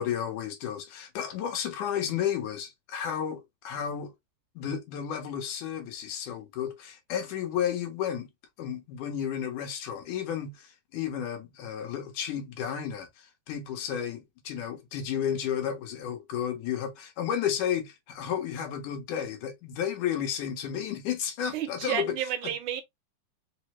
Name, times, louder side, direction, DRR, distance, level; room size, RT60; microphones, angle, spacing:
voice 1, 0.0-4.1 4.6-8.3 8.6-13.1 13.5-22.1, left 9 dB, 80° left, 2.5 m, -32 dB
voice 2, 21.5-22.8, right 10 dB, 85° right, 2.2 m, -31 dB
5.4 x 2.0 x 2.9 m
omnidirectional pair, 3.5 m